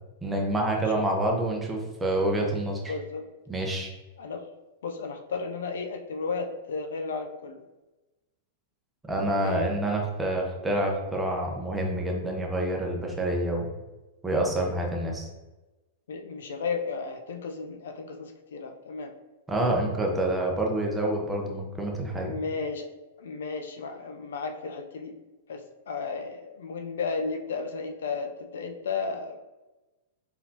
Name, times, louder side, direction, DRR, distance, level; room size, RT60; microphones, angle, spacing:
voice 1, 0.2-3.0 3.5-3.9 9.1-13.7 14.2-15.3 19.5-22.3, right 1 dB, 10° right, 0 dB, 0.9 m, -27 dB
voice 2, 2.9-3.3 4.2-4.4 4.8-7.6 9.3-9.6 16.1-19.1 22.1-22.9 23.2-25.1 25.5-29.4, left 4 dB, 85° left, 5 dB, 0.6 m, -34 dB
4.0 x 3.7 x 2.9 m, 1.1 s
hypercardioid pair, 140°, 0 cm